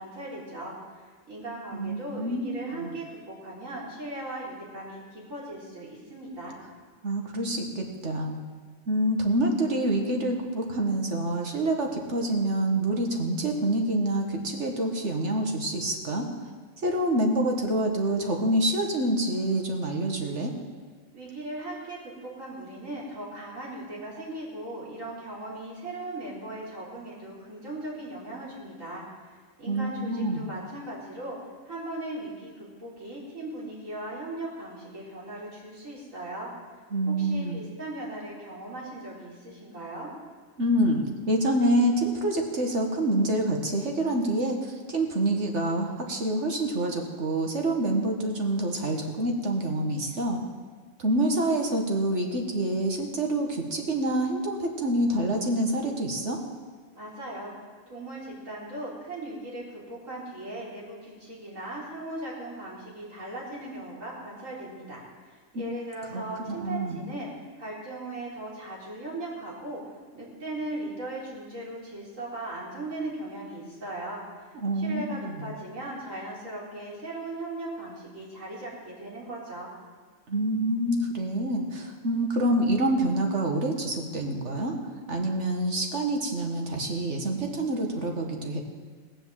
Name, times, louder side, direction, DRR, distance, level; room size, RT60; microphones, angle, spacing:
voice 1, 0.0-6.6 21.1-31.4 31.6-36.5 37.1-40.1 56.9-57.5 57.9-67.3 67.6-69.8 70.1-79.7, right 1 dB, 75° right, -6 dB, 4.5 m, -38 dB
voice 2, 1.7-2.9 7.0-8.4 8.9-16.3 16.8-20.5 29.7-30.5 36.9-37.6 40.6-50.4 51.0-56.4 65.5-65.6 66.1-67.0 74.6-75.5 80.3-84.8 85.1-88.6, right 1 dB, 60° right, 2 dB, 1.9 m, -27 dB
18.5 x 7.3 x 7.6 m, 1.5 s
omnidirectional pair, 1.4 m